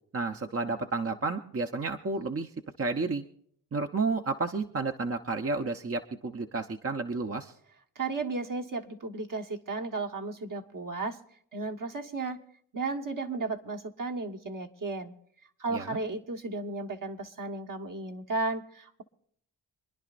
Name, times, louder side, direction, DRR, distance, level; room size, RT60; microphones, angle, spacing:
voice 1, 0.1-2.5 2.8-3.2 3.7-7.5 15.7-16.0, right 3 dB, 35° right, 4 dB, 1.0 m, -31 dB
voice 2, 7.9-11.2 11.5-12.4 12.7-15.1 15.6-19.0, right 3 dB, 50° right, 2 dB, 1.6 m, -34 dB
27.0 x 10.5 x 2.6 m, 0.64 s
cardioid pair, 60°, 41 cm